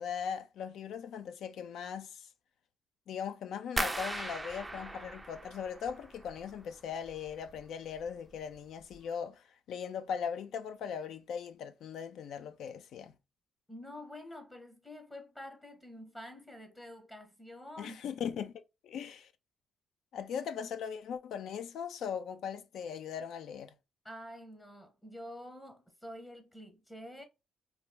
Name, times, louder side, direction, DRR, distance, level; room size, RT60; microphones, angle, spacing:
voice 1, 0.0-2.3 3.1-13.1 17.8-18.5 18.8-19.3 20.1-23.7, left 7 dB, 75° left, 0.5 m, -39 dB
sound 1, 3.8-6.6 6.9-7.6 8.0-8.4 8.8-9.0, right 2 dB, 15° right, 0.4 m, -39 dB
voice 2, 13.7-18.0 24.0-27.2, left 1 dB, 15° left, 0.8 m, -48 dB
4.1 x 2.3 x 2.2 m
cardioid pair, 90°, 0 cm